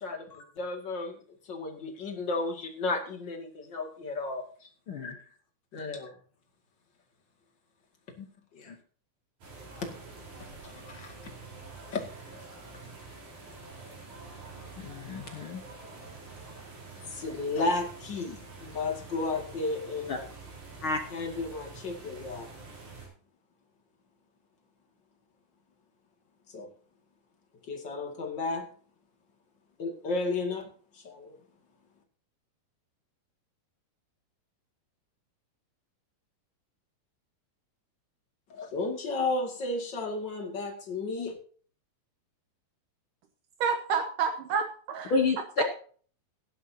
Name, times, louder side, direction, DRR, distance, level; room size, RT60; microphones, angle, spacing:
voice 1, 0.0-1.2 1.4-4.7 5.0-5.3 5.7-6.1 8.5-8.7 10.6-11.1 11.9-12.0 17.1-20.2 21.1-22.5 26.5-26.7 27.7-28.7 29.8-30.7 30.9-31.4 38.5-41.4, left 3 dB, 35° left, 3 dB, 2.4 m, -33 dB
sound 1, 9.4-23.1, right 3 dB, 55° right, 5.7 m, -47 dB
voice 2, 14.8-15.6 20.1-20.2 20.8-21.0 45.1-45.6, left 3 dB, 65° left, 4 dB, 1.3 m, -29 dB
voice 3, 43.6-45.1 45.6-45.7, right 6 dB, 70° right, 6 dB, 2.5 m, -29 dB
17.0 x 11.0 x 2.8 m, 0.44 s
omnidirectional pair, 4.1 m